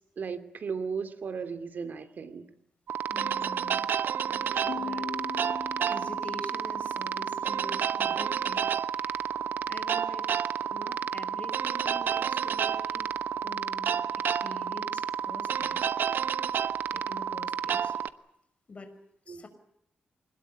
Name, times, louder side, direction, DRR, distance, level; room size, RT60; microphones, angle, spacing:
voice 1, 0.2-2.5 19.3-19.5, right 5 dB, 60° right, 10 dB, 2.8 m, -36 dB
sound 1, 2.9-18.1, right 8 dB, 75° right, 1.0 m, -30 dB
voice 2, 3.1-3.9 4.2-5.6 5.8-8.7 9.0-9.4 9.7-10.3 10.7-13.1 13.4-14.0 14.4-15.8 16.9-17.9 18.7-18.9 19.3-19.5, left 3 dB, 35° left, 9 dB, 5.7 m, -45 dB
Piano, 4.7-8.1, left 7 dB, 90° left, 1.9 m, -42 dB
26.0 x 20.5 x 8.3 m, 0.79 s
wide cardioid pair, 110°, 3 cm